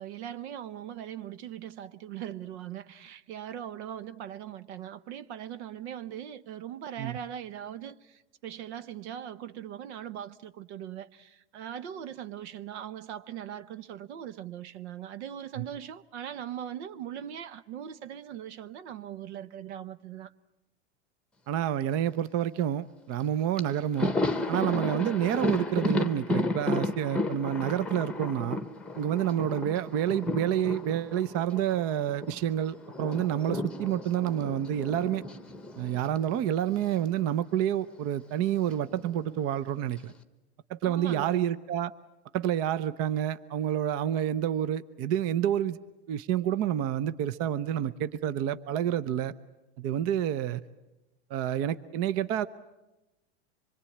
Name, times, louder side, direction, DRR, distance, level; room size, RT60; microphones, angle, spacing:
voice 1, 0.0-20.3 40.8-41.5, right 10 dB, 70° right, 1.1 m, -40 dB
voice 2, 21.5-24.1 24.5-28.6 29.0-35.2 35.8-40.1 40.7-41.9 42.3-45.8 46.1-49.3 49.8-50.6 51.3-52.5, right 10 dB, 40° right, 0.8 m, -28 dB
Thunder, 23.2-23.3 23.6-32.4 32.7-37.0 37.2-37.4 38.6-39.3, left 1 dB, 5° left, 1.1 m, -33 dB
25.5 x 22.0 x 8.6 m
supercardioid pair, 130°, 35 cm